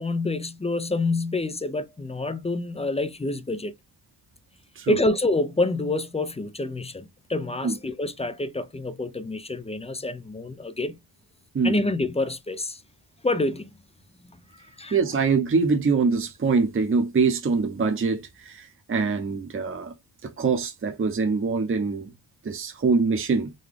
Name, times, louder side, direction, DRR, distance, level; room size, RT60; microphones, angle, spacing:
voice 1, 0.0-3.7 4.9-11.0 11.6-12.8 13.2-13.7 14.8-15.0, left 2 dB, 15° left, 0.4 m, -27 dB
voice 2, 14.9-19.9 20.2-22.1 22.4-23.5, right 4 dB, 30° right, 0.8 m, -24 dB
3.9 x 2.2 x 3.3 m
cardioid pair, 85°, 42 cm